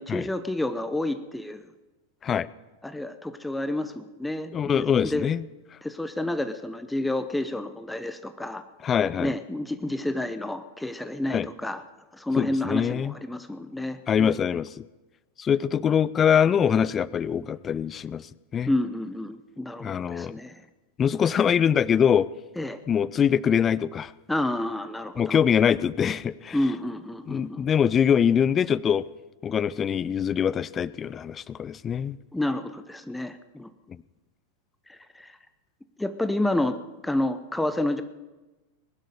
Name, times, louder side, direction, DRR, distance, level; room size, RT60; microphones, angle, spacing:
voice 1, 0.0-1.6 2.8-5.3 5.8-8.6 9.2-11.8 12.2-14.3 18.7-20.5 22.6-22.8 24.3-25.4 26.5-27.6 32.3-33.7 34.9-35.3 36.0-36.8 37.0-38.0, left 1 dB, 5° left, 10 dB, 0.8 m, -29 dB
voice 2, 4.5-5.4 8.8-9.4 11.3-11.5 12.4-13.1 14.1-14.8 15.4-18.7 19.8-20.4 21.0-22.3 22.9-24.1 25.2-26.6 27.3-29.1 29.4-32.2, left 8 dB, 25° left, 21 dB, 0.4 m, -23 dB
21.0 x 11.5 x 5.1 m, 1.2 s
figure-of-eight pair, 90°, 0 cm